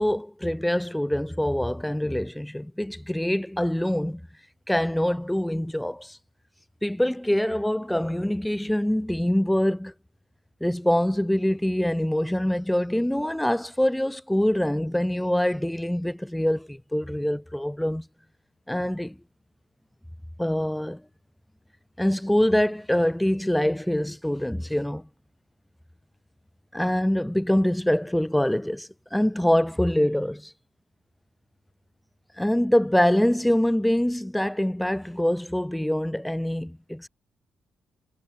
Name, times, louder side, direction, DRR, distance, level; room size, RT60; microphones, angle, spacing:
voice 1, 0.0-4.2 4.7-6.2 6.8-9.9 10.6-18.1 18.7-19.2 20.4-21.0 22.0-25.0 26.7-30.5 32.4-37.1, left 1 dB, 5° left, 1.1 m, -24 dB
cardioid pair, 90°, 0 cm